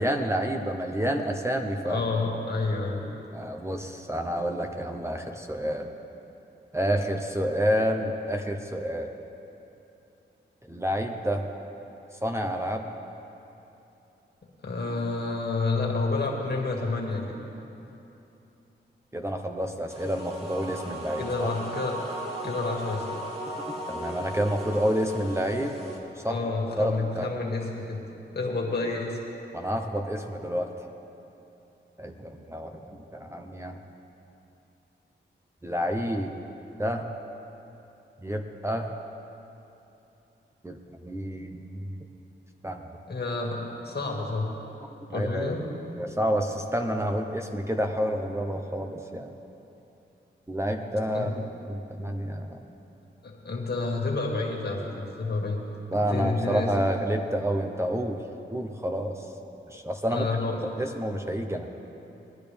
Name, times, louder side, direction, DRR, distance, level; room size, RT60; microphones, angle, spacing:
voice 1, 0.0-2.0 3.3-5.9 6.7-9.1 10.7-11.5 12.2-12.9 19.1-21.5 23.9-26.4 26.8-27.3 29.5-30.7 32.0-33.8 35.6-36.3 36.8-37.1 38.2-38.9 40.6-42.0 42.6-42.8 45.1-45.6 46.0-49.3 50.5-52.6 55.9-58.2 58.5-59.2 59.7-60.3 60.6-61.7, equal, 15° right, 4 dB, 0.9 m, -29 dB
voice 2, 1.8-3.2 14.4-17.4 21.2-22.0 22.4-23.2 26.2-28.0 28.3-29.2 43.1-44.5 45.1-45.6 51.1-51.3 53.2-55.6 55.9-56.7 60.1-60.6, left 3 dB, 55° left, -1 dB, 2.1 m, -29 dB
sound 1, 19.9-26.0, right 1 dB, 30° right, 2.7 m, -37 dB
20.5 x 10.5 x 3.5 m, 2.9 s
cardioid pair, 60°, 20 cm